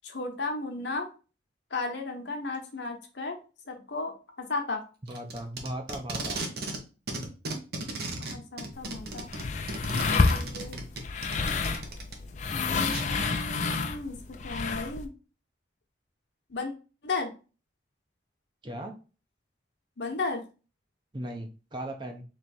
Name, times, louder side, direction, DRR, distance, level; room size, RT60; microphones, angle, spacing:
voice 1, 0.0-1.1 1.7-3.4 3.6-4.8 7.8-7.9 8.2-9.3 10.0-10.8 12.5-15.1 16.5-16.7 17.0-17.3 20.0-20.4, left 3 dB, 70° left, 3 dB, 1.0 m, -35 dB
voice 2, 5.1-6.5 18.6-18.9 21.1-22.2, right 1 dB, 25° right, 3 dB, 0.7 m, -37 dB
Packing tape duct tape, 5.1-6.8 7.1-12.1 12.9-13.0, right 2 dB, 55° right, 0.9 m, -36 dB
sound 1, 8.7-15.1, left 4 dB, 40° left, 0.4 m, -29 dB
3.4 x 3.2 x 4.1 m, 0.33 s
head